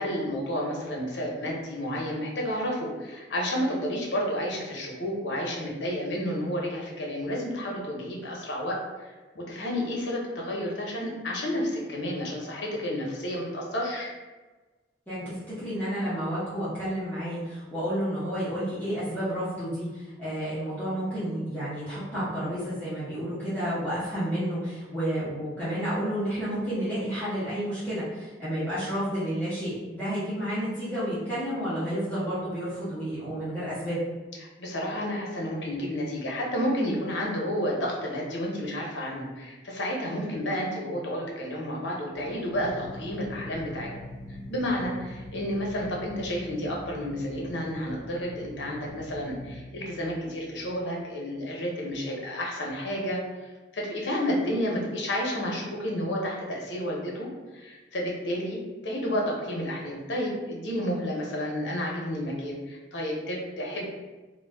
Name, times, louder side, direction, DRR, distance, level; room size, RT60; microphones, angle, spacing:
voice 1, 0.0-14.1 34.6-43.9 44.5-57.3 57.5-63.9, equal, 80° left, -2 dB, 0.7 m, -31 dB
voice 2, 15.1-34.0, equal, 10° left, -13 dB, 0.9 m, -31 dB
sound 1, 42.1-50.8, left 1 dB, 60° right, 1.0 m, -43 dB
2.5 x 2.2 x 3.4 m, 1.2 s
head